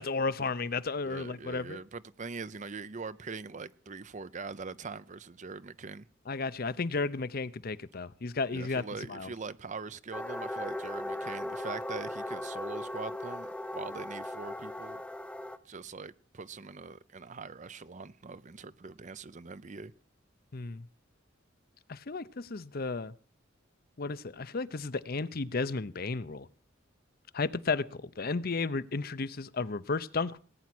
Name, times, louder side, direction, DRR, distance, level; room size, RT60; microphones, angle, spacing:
voice 1, 0.0-1.8 6.3-8.8 9.1-9.3 20.5-20.8 21.9-23.1 24.0-26.5 27.3-30.4, left 4 dB, 50° left, 0.7 m, -33 dB
voice 2, 1.0-6.1 8.5-15.0 15.6-19.9, right 4 dB, 40° right, 0.6 m, -42 dB
sound 1, 10.1-15.6, left 1 dB, 5° left, 0.8 m, -38 dB
19.0 x 9.6 x 6.1 m
head